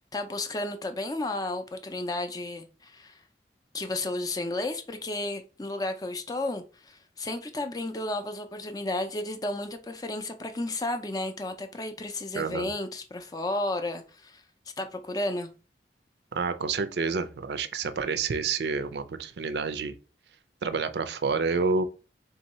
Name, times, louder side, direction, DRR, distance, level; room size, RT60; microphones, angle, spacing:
voice 1, 0.0-3.2 3.7-14.4 14.8-15.5, left 2 dB, 20° left, 0.4 m, -33 dB
voice 2, 12.3-12.7 16.3-19.9 20.6-21.8, right 4 dB, 70° right, 0.4 m, -29 dB
3.7 x 2.7 x 4.1 m
head